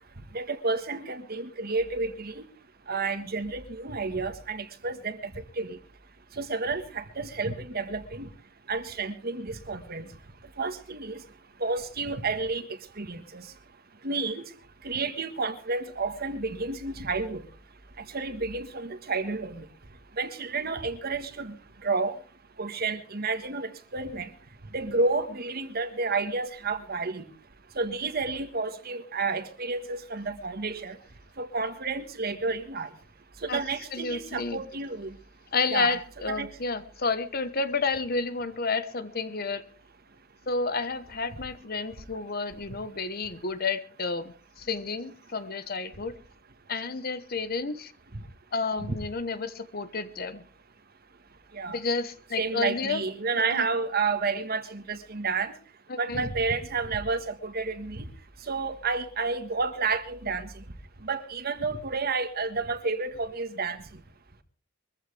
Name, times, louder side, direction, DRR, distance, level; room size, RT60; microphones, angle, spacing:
voice 1, 0.3-2.5 2.9-5.8 6.3-8.3 8.7-10.1 10.6-11.2 11.6-13.5 14.0-14.4 14.8-17.4 18.0-19.6 20.2-21.5 21.8-22.2 22.6-24.3 24.7-27.2 27.7-31.0 31.4-32.9 33.4-35.2 35.7-36.0 36.3-36.5 48.1-48.2 51.5-51.8 52.4-55.5 56.0-58.1 58.5-60.6 61.0-63.8, right 4 dB, 50° right, 9 dB, 1.5 m, -30 dB
voice 2, 33.9-34.6 35.5-39.6 40.5-46.2 46.7-47.9 48.5-50.4 51.7-53.0 53.3-53.6 55.9-56.3, left 4 dB, 50° left, 12 dB, 1.1 m, -31 dB
23.0 x 14.5 x 3.4 m, 0.38 s
head